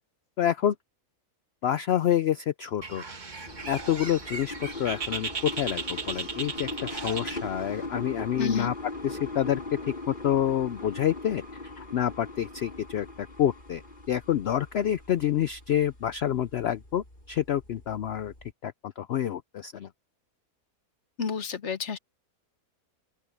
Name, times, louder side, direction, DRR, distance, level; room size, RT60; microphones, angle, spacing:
voice 1, 0.4-0.7 1.6-3.0 3.7-8.7 9.0-9.6 10.1-11.4 11.8-13.8 14.1-18.3 18.6-19.9, left 10 dB, 75° left, 0.5 m, -28 dB
Bird, 2.8-7.9, right 4 dB, 30° right, 1.5 m, -36 dB
sound 1, 3.5-18.5, left 2 dB, 30° left, 6.5 m, -41 dB
voice 2, 8.4-8.7 21.2-22.0, left 5 dB, 50° left, 1.2 m, -29 dB
open air
omnidirectional pair, 1.6 m